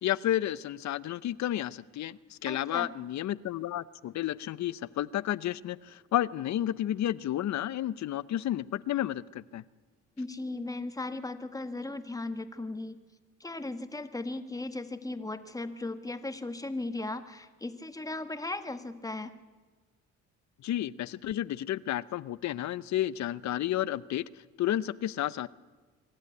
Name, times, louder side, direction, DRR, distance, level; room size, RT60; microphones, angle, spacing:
voice 1, 0.0-9.6 20.6-24.2 24.6-25.5, left 12 dB, 65° left, 18 dB, 0.7 m, -31 dB
voice 2, 2.4-2.9 10.2-13.0 13.4-19.3, left 2 dB, 10° left, 9 dB, 1.4 m, -37 dB
24.5 x 12.5 x 9.4 m, 1.4 s
cardioid pair, 90°, 30 cm